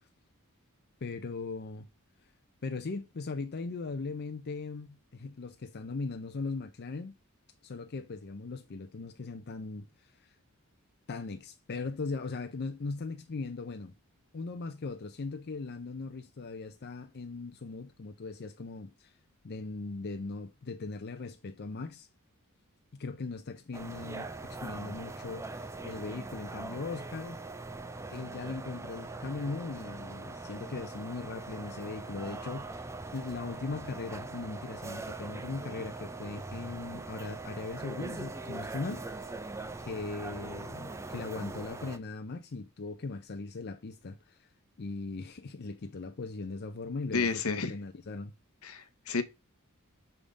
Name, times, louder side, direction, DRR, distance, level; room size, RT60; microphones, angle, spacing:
voice 1, 1.0-1.9 2.6-7.1 7.6-10.3 11.1-13.9 14.3-19.1 19.4-22.1 23.0-27.4 28.1-39.3 39.8-44.5 44.8-48.3, left 3 dB, 50° left, 0.5 m, -39 dB
sound 1, 23.7-42.0, right 3 dB, 15° right, 0.4 m, -41 dB
voice 2, 47.1-47.7 48.6-49.2, left 4 dB, 75° left, 0.9 m, -31 dB
6.8 x 3.6 x 5.0 m
head